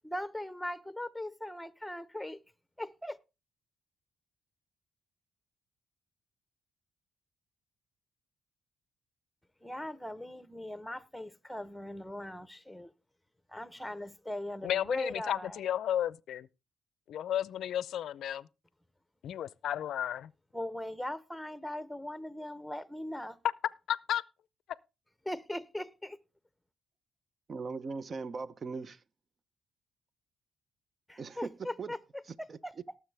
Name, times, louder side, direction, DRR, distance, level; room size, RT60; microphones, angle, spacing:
voice 1, 0.0-2.4 2.8-3.2 9.6-12.9 13.5-15.6 20.5-23.4 25.2-26.2 31.1-33.0, left 1 dB, 5° left, 0.9 m, -40 dB
voice 2, 14.6-16.5 17.1-18.5 19.2-20.3 23.9-24.2, left 11 dB, 70° left, 0.5 m, -33 dB
voice 3, 27.5-29.0 31.2-31.9 32.3-32.6, right 4 dB, 40° right, 0.7 m, -39 dB
18.5 x 7.1 x 3.4 m
cardioid pair, 90°, 0 cm